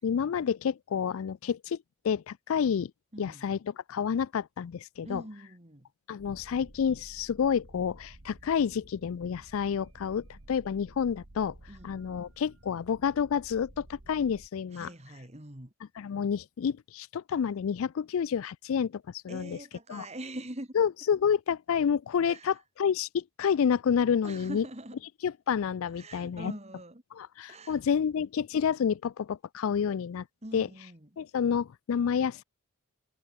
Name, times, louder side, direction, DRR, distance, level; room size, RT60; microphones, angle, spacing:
voice 1, 0.0-1.8 2.0-2.9 3.2-5.2 6.1-11.5 11.8-14.9 16.0-19.6 19.9-20.0 20.8-24.6 25.2-26.5 27.2-30.2 30.5-30.7 31.2-32.4, left 7 dB, 70° left, 0.4 m, -29 dB
voice 2, 3.1-3.5 5.0-5.9 11.7-12.0 14.7-15.7 19.3-20.7 22.2-22.5 24.2-25.0 25.9-27.0 27.5-27.8 30.4-31.1, right 1 dB, 30° right, 2.3 m, -43 dB
sound 1, 6.2-14.5, right 1 dB, 65° right, 1.7 m, -53 dB
head